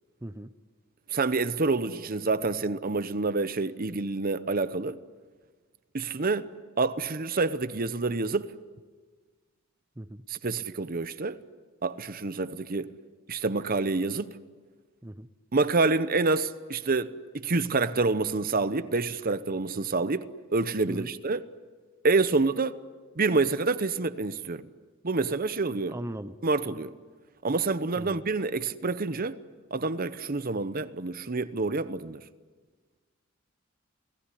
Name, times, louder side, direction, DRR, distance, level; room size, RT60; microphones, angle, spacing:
voice 1, 0.2-0.5 10.0-10.2 15.0-15.3 20.9-21.1 25.9-26.4 28.0-28.2, right 1 dB, 15° right, 0.7 m, -38 dB
voice 2, 1.1-5.0 5.9-6.5 6.8-8.5 10.3-11.4 11.8-12.9 13.3-14.3 15.5-21.4 22.0-22.8 23.2-24.7 25.0-25.9 26.4-26.9 27.4-29.4 29.7-32.2, right 3 dB, 45° right, 0.9 m, -27 dB
29.0 x 18.0 x 10.0 m
head